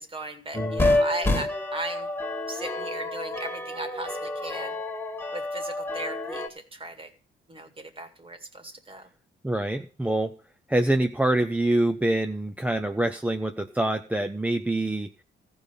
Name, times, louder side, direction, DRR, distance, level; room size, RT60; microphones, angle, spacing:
voice 1, 0.0-2.1 2.5-4.8 5.3-7.1 7.5-9.1, right 2 dB, 25° right, 8 dB, 2.0 m, -37 dB
sound 1, 0.5-6.5, left 2 dB, 10° left, 1.9 m, -28 dB
voice 2, 9.4-10.3 10.7-15.2, right 1 dB, 5° right, 6 dB, 0.7 m, -25 dB
14.5 x 5.4 x 8.4 m, 0.40 s
cardioid pair, 90°, 20 cm